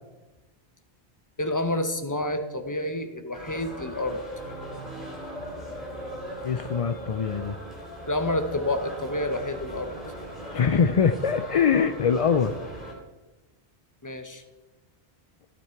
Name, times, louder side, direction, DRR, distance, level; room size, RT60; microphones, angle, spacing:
voice 1, 1.4-4.2 8.1-9.9 14.0-14.4, left 1 dB, 20° left, 7 dB, 0.9 m, -29 dB
sound 1, 3.3-12.9, right 1 dB, ahead, 3.4 m, -39 dB
voice 2, 6.4-7.6 10.5-12.5, left 6 dB, 50° left, 9 dB, 0.4 m, -23 dB
14.0 x 9.1 x 4.5 m, 1.1 s
omnidirectional pair, 1.1 m